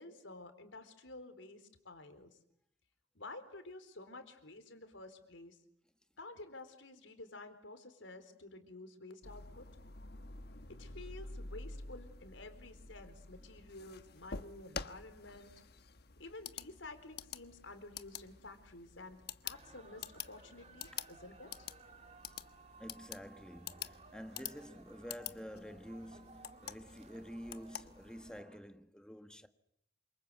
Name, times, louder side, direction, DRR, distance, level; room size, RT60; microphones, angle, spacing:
voice 1, 0.0-2.4 3.1-5.6 6.2-9.7 10.8-15.5 16.2-21.7, left 2 dB, 80° left, 4.2 m, -51 dB
sound 1, 9.2-28.4, left 6 dB, 55° left, 1.3 m, -49 dB
sound 2, 19.5-28.6, right 4 dB, 35° right, 2.8 m, -59 dB
voice 2, 22.8-29.5, equal, 5° left, 1.6 m, -49 dB
28.0 x 26.0 x 8.1 m
head